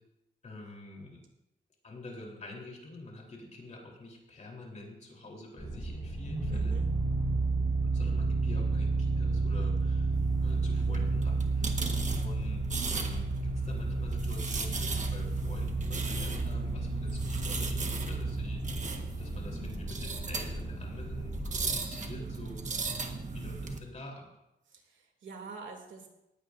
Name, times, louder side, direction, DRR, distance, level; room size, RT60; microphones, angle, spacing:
voice 1, 0.4-1.2 1.8-6.9 7.9-11.9 12.2-18.9 19.2-24.3, left 2 dB, 40° left, -1 dB, 3.6 m, -47 dB
sound 1, 5.6-21.7, right 3 dB, 15° right, 5.3 m, -31 dB
voice 2, 6.5-6.9 11.6-12.0 24.7-26.1, right 4 dB, 80° right, 2 dB, 2.6 m, -46 dB
sound 2, 10.1-23.8, right 4 dB, 40° right, 1.3 m, -38 dB
19.0 x 15.5 x 2.6 m, 0.88 s
wide cardioid pair, 175°, 19 cm